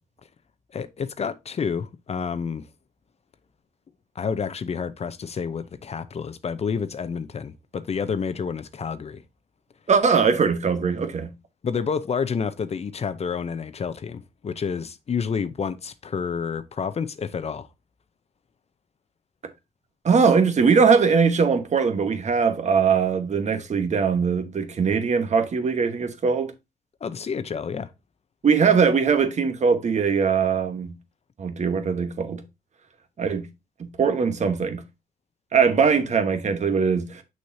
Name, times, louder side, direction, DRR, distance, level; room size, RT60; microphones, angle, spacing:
voice 1, 0.7-2.6 4.2-9.2 11.6-17.7 27.0-27.9, left 6 dB, 45° left, 0.7 m, -29 dB
voice 2, 9.9-11.3 20.0-26.5 28.4-30.9 31.4-32.4 33.2-33.5 33.8-34.8 35.5-37.2, right 5 dB, 50° right, 1.2 m, -21 dB
6.4 x 6.4 x 2.7 m
cardioid pair, 110°, 15 cm